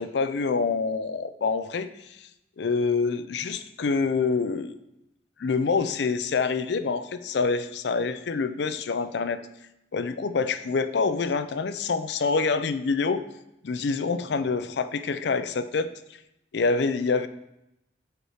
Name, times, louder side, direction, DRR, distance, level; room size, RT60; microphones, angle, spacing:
voice 1, 0.0-2.2 2.6-4.8 5.4-9.4 9.9-13.2 13.6-15.9 16.5-17.3, left 4 dB, 65° left, 13 dB, 0.4 m, -26 dB
8.1 x 4.4 x 4.9 m, 0.87 s
head